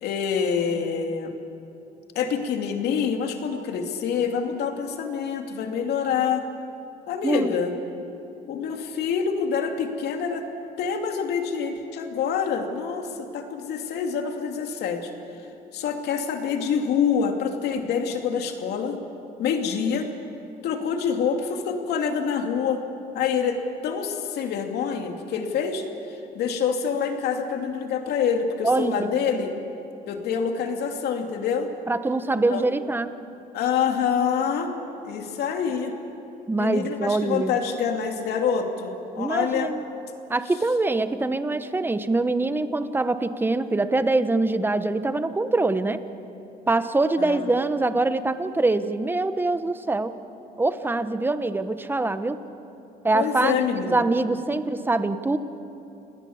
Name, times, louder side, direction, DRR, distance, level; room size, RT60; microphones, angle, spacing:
voice 1, 0.0-1.3 2.1-6.5 7.1-7.7 8.5-10.4 10.8-15.1 15.7-19.0 19.4-20.1 20.6-22.8 23.1-25.8 26.1-29.5 30.1-31.7 32.5-32.6 33.5-34.7 35.0-35.9 36.6-39.7 47.2-47.6 53.1-54.0, left 6 dB, 75° left, 4 dB, 2.7 m, -26 dB
voice 2, 28.6-29.1 31.9-33.1 36.5-37.6 39.2-39.8 40.3-46.0 46.7-50.1 50.6-52.4 53.0-55.4, right 2 dB, 10° right, 11 dB, 1.1 m, -24 dB
29.0 x 19.5 x 7.3 m, 2.8 s
cardioid pair, 110°, 17 cm